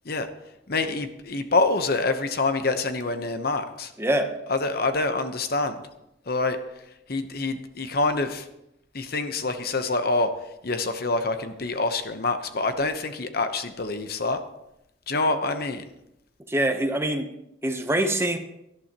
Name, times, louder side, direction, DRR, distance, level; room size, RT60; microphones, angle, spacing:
voice 1, 0.7-3.9 4.5-5.8 6.3-6.6 7.1-8.5 8.9-10.3 10.6-14.4 15.1-15.8, left 3 dB, 55° left, 8 dB, 1.0 m, -26 dB
voice 2, 4.0-4.3 16.5-17.3 17.6-18.4, right 1 dB, 15° right, 5 dB, 1.0 m, -24 dB
18.0 x 11.5 x 3.0 m, 0.85 s
head